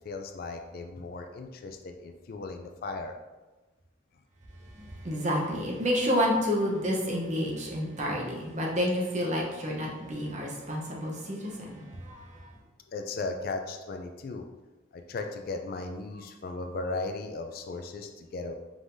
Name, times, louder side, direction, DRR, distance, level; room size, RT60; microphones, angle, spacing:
voice 1, 0.0-3.1 12.9-14.4 14.9-18.5, left 3 dB, 45° left, 5 dB, 0.3 m, -36 dB
voice 2, 4.7-12.5, equal, 35° right, -2 dB, 0.8 m, -30 dB
4.8 x 3.7 x 2.6 m, 1.2 s
head